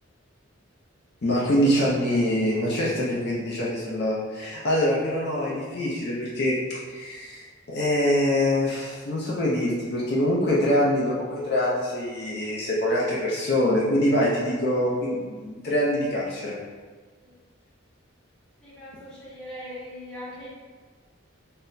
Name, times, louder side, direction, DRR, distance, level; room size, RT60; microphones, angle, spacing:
voice 1, 1.2-7.4 7.7-16.6, left 1 dB, 50° left, -6 dB, 0.5 m, -24 dB
voice 2, 18.6-20.5, left 1 dB, 5° left, -10 dB, 0.9 m, -40 dB
4.0 x 2.0 x 2.6 m, 1.4 s
head